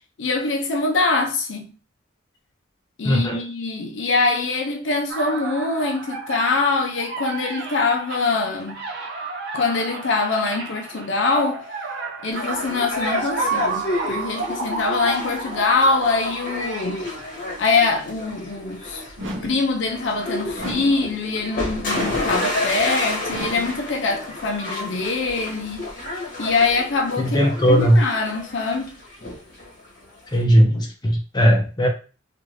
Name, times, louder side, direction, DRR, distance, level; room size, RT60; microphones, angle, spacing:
voice 1, 0.2-1.7 3.0-8.8 9.5-11.6 12.2-17.1 17.6-25.8 26.4-28.9, left 3 dB, 65° left, 0.5 m, -23 dB
voice 2, 3.0-3.4 27.2-28.0 30.3-31.9, equal, 20° left, 0.6 m, -17 dB
sound 1, 5.1-17.4, right 4 dB, 55° right, 0.5 m, -31 dB
sound 2, 12.3-30.4, left 2 dB, 45° left, 1.0 m, -30 dB
sound 3, 19.2-19.7 20.6-21.1 21.9-22.4 23.3-23.8, equal, 80° right, 0.9 m, -33 dB
2.6 x 2.5 x 3.1 m
head